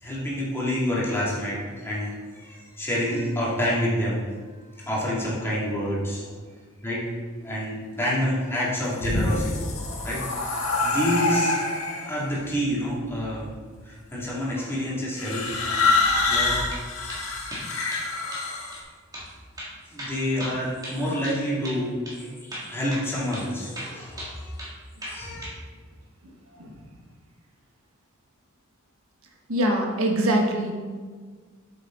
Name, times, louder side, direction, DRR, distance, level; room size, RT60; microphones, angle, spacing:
voice 1, 0.0-4.3 4.8-6.2 6.8-7.0 7.4-9.6 10.0-11.6 12.1-13.5 13.8-15.4 16.3-16.6 19.9-24.6 25.0-25.5, equal, 10° left, -7 dB, 2.4 m, -28 dB
sound 1, 8.8-12.2 13.1-13.6 15.2-18.8, left 3 dB, 85° left, 1.5 m, -26 dB
sound 2, 15.9-16.1 16.3-16.8 17.1-17.2 17.5-18.1 18.3-18.5 18.7-18.8 19.1-19.3 19.6-21.4 21.6-21.8 22.1-22.2 22.5-23.1 23.3-23.5 23.8-24.7 25.0-25.6, equal, 20° right, 2.1 m, -37 dB
voice 2, 26.5-26.9 29.5-30.7, right 1 dB, 80° right, 1 dB, 1.2 m, -24 dB
8.3 x 7.2 x 3.9 m, 1.5 s
head